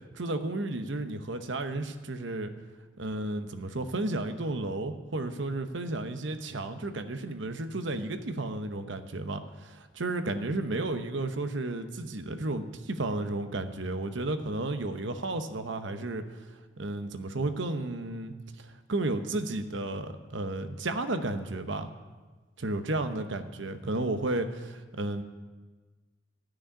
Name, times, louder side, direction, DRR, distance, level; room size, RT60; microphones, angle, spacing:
voice 1, 0.1-2.5 3.0-16.2 16.8-21.9 22.6-25.2, right 2 dB, 75° right, 8 dB, 0.9 m, -33 dB
14.0 x 6.4 x 9.9 m, 1.3 s
head